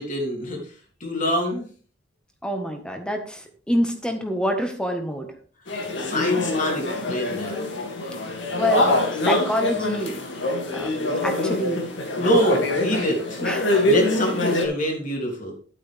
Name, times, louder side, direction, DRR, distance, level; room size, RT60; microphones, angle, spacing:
voice 1, 0.0-1.7 5.8-7.6 12.2-13.4 13.8-15.5, equal, 45° left, -1 dB, 3.4 m, -25 dB
voice 2, 2.4-5.3 8.6-9.0 9.2-10.2 10.7-10.9 11.2-11.8 13.4-13.7, equal, 5° left, 4 dB, 1.4 m, -26 dB
sound 1, 5.7-14.7, left 2 dB, 85° left, 2.4 m, -24 dB
11.5 x 8.7 x 3.5 m, 0.42 s
head